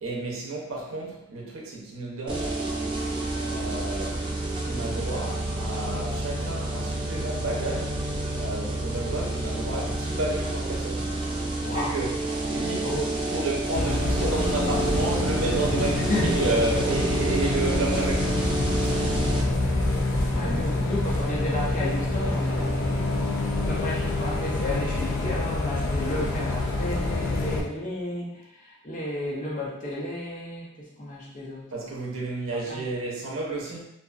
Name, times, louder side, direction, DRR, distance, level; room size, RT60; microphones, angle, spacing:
voice 1, 0.0-2.6 3.4-4.3 4.6-8.0 8.3-11.1 11.6-12.2 12.5-12.9 13.3-18.5 31.7-33.9, right 2 dB, 85° right, -3 dB, 0.7 m, -31 dB
sound 1, 2.3-19.4, right 2 dB, 25° right, 0.3 m, -29 dB
voice 2, 11.6-12.0 12.8-13.2 16.0-16.4 20.3-23.3 23.7-31.9 32.6-32.8, left 1 dB, 40° left, -5 dB, 0.7 m, -32 dB
Bus, 13.7-27.6, left 2 dB, 85° left, 0.5 m, -26 dB
2.5 x 2.4 x 2.4 m, 0.84 s
head